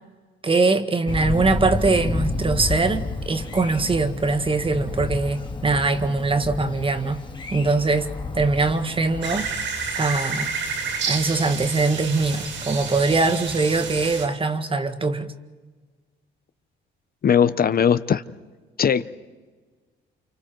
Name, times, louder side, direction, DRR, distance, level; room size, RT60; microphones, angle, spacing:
voice 1, 0.4-7.2 7.5-9.5 10.0-10.5 11.1-15.3, right 3 dB, 25° right, 1.8 m, -22 dB
Thunder, 1.1-9.5, left 2 dB, 25° left, 2.5 m, -30 dB
sound 1, 9.2-14.3, right 5 dB, 70° right, 3.8 m, -30 dB
voice 2, 17.2-18.2 18.8-19.0, left 7 dB, 50° left, 0.8 m, -19 dB
29.5 x 27.5 x 4.6 m
cardioid pair, 90°, 20 cm